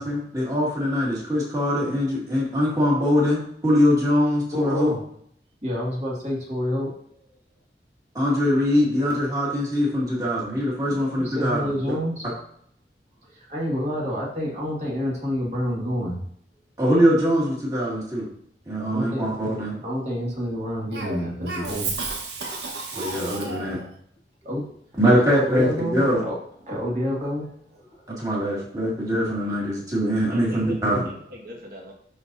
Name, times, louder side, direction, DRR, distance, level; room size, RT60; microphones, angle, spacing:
voice 1, 0.0-4.9 8.1-11.7 16.8-18.3 18.7-19.8 22.9-23.8 25.0-26.2 28.1-31.0, equal, 20° right, -5 dB, 2.2 m, -22 dB
voice 2, 4.5-5.0 5.6-6.9 7.2-7.3 10.9-12.3 13.2-16.2 18.9-19.2 19.8-22.2 24.4-24.8 25.0-26.4 26.6-28.0, equal, 40° right, -4 dB, 2.0 m, -28 dB
Cough, 20.9-23.9, right 3 dB, 75° right, 1.3 m, -32 dB
voice 3, 28.4-28.7 30.3-31.9, left 1 dB, 55° right, -2 dB, 1.6 m, -42 dB
11.5 x 4.1 x 2.7 m, 0.67 s
head